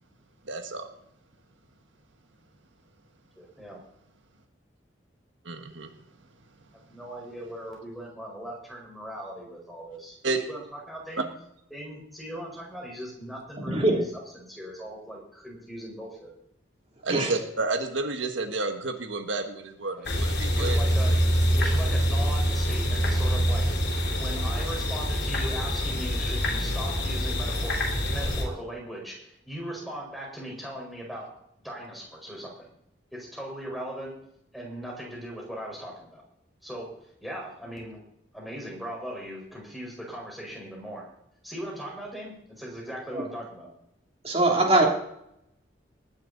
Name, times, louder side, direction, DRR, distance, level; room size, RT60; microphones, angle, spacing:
voice 1, 0.5-0.9 5.4-5.9 10.2-10.4 11.2-11.3 17.0-20.8, right 3 dB, 85° right, 6 dB, 1.6 m, -30 dB
voice 2, 3.4-3.8 6.9-11.3 11.7-14.0 14.3-16.3 19.9-20.1 20.6-21.2 21.5-23.7 24.2-31.3 31.6-32.7 33.1-34.1 34.5-36.2 36.6-36.9 37.2-38.0 38.3-41.0 41.4-43.7, equal, ahead, -2 dB, 4.8 m, -39 dB
voice 3, 13.7-14.0 17.1-17.3 43.1-43.2 44.2-44.9, right 2 dB, 30° right, 0 dB, 3.1 m, -22 dB
sound 1, 20.0-28.4, equal, 60° left, 3.3 m, -25 dB
19.5 x 10.5 x 4.1 m, 0.77 s
head